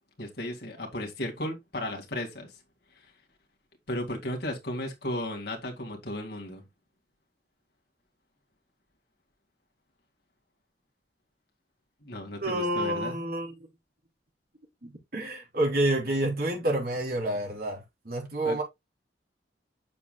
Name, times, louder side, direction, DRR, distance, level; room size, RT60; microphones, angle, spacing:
voice 1, 0.2-2.5 3.9-6.6 12.0-13.2 18.4-18.6, left 1 dB, 60° left, 2.2 m, -35 dB
voice 2, 12.4-13.7 14.8-18.6, right 1 dB, 55° right, 3.6 m, -29 dB
8.5 x 7.0 x 2.2 m
head